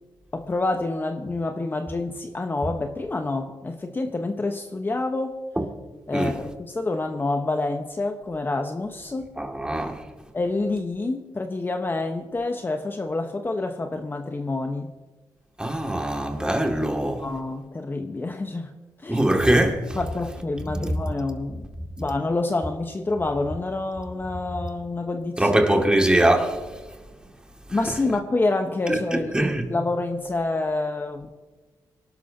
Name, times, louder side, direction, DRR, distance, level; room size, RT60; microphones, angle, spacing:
voice 1, 0.3-5.4 6.1-9.3 10.3-14.9 17.2-18.7 19.0-19.2 19.9-21.7 22.0-25.6 27.7-31.3, left 2 dB, 25° left, 1.0 m, -27 dB
voice 2, 9.4-10.0 15.6-17.3 19.1-20.0 25.4-26.7 28.9-29.7, right 1 dB, 10° right, 2.2 m, -22 dB
24.5 x 12.0 x 2.8 m
cardioid pair, 75°, 8 cm